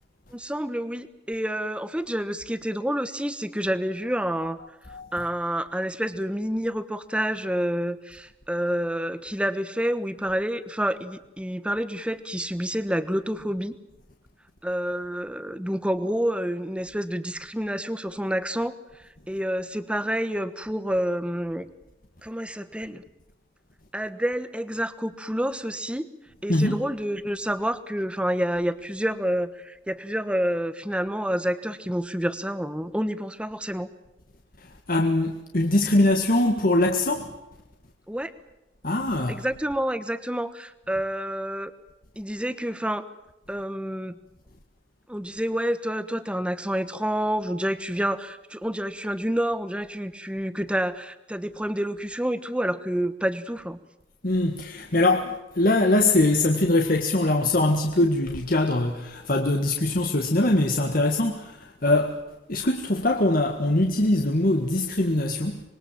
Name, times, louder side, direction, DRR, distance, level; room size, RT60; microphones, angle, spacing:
voice 1, 0.3-4.6 5.1-13.7 14.6-18.7 19.0-21.7 22.2-23.0 23.9-26.1 26.4-33.9 38.1-38.3 39.3-41.7 42.2-43.1 43.5-44.2 45.1-53.8, equal, 5° right, 1.3 m, -28 dB
voice 2, 34.9-37.3 38.8-39.4 54.2-61.6 61.8-62.2 62.5-65.6, left 2 dB, 50° left, 1.8 m, -22 dB
25.5 x 22.0 x 7.5 m
head